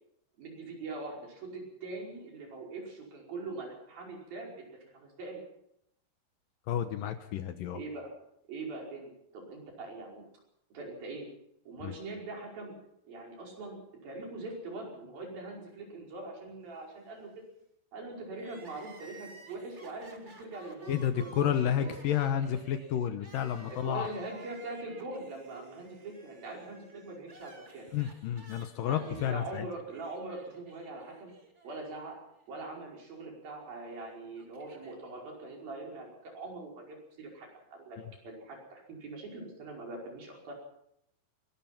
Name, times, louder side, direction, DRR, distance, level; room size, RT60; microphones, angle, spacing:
voice 1, 0.4-5.4 7.7-8.1 8.5-10.2 10.7-11.3 11.6-12.8 13.0-17.4 17.9-21.3 21.8-21.9 23.7-27.9 28.8-31.3 31.6-32.2 32.5-38.0 38.2-40.5, right 2 dB, 75° right, 0 dB, 6.9 m, -42 dB
voice 2, 6.7-7.8 11.8-11.9 20.9-24.1 27.9-29.7, left 9 dB, 75° left, 9 dB, 2.6 m, -31 dB
Crying sobbing, 18.3-32.5 32.8-32.9 33.8-35.0, right 2 dB, 20° right, 2.2 m, -55 dB
22.0 x 20.0 x 5.9 m, 0.76 s
omnidirectional pair, 4.1 m